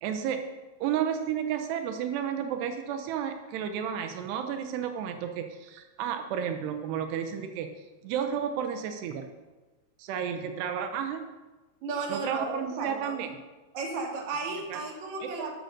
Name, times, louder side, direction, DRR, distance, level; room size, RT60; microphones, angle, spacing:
voice 1, 0.0-0.4 0.8-7.7 8.0-9.3 10.0-11.2 12.1-13.4 14.7-14.8 15.2-15.3, right 8 dB, 90° right, 6 dB, 3.0 m, -32 dB
voice 2, 11.8-13.1 13.7-15.5, right 3 dB, 50° right, 0 dB, 3.5 m, -34 dB
11.5 x 11.0 x 6.6 m, 1.2 s
omnidirectional pair, 4.6 m